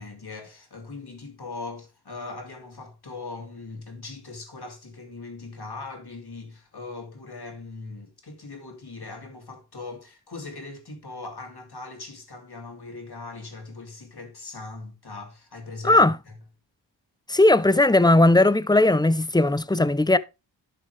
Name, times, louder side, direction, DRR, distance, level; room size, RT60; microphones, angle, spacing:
voice 1, 0.0-16.4, left 3 dB, 55° left, 2.8 m, -40 dB
voice 2, 15.8-16.2 17.3-20.2, left 2 dB, 10° left, 0.6 m, -18 dB
11.5 x 6.0 x 3.3 m
wide cardioid pair, 50°, 45 cm